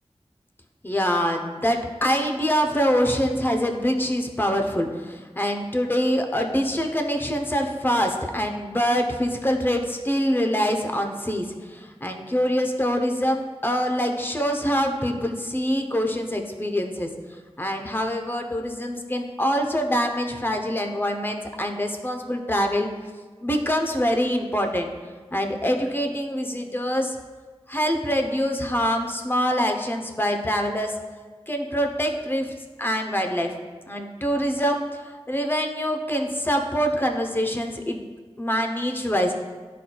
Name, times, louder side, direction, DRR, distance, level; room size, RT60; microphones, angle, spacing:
voice 1, 0.8-17.1 17.6-22.9 23.4-24.9 25.3-27.2 27.7-30.9 31.5-32.5 32.8-33.5 33.9-38.0 38.4-39.3, equal, 20° left, 4 dB, 0.7 m, -25 dB
11.5 x 4.2 x 2.3 m, 1.4 s
wide cardioid pair, 70°, 11 cm